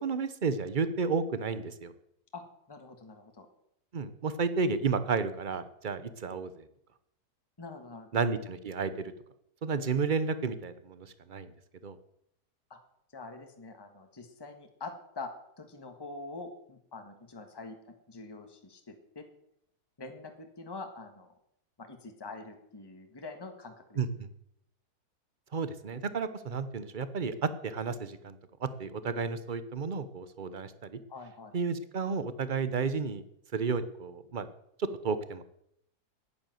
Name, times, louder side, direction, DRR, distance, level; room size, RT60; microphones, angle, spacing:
voice 1, 0.0-1.9 3.9-6.7 8.1-9.1 9.6-11.5 11.8-12.0 24.0-24.3 25.5-31.0 31.5-33.2 33.5-34.5 34.8-35.4, right 5 dB, 40° right, 13 dB, 0.8 m, -32 dB
voice 2, 2.7-3.5 7.6-8.1 12.7-12.8 13.1-15.3 15.6-19.2 20.0-21.3 21.8-24.0 31.1-31.5, left 3 dB, 15° left, 5 dB, 1.4 m, -45 dB
10.5 x 9.9 x 7.8 m, 0.75 s
omnidirectional pair, 1.7 m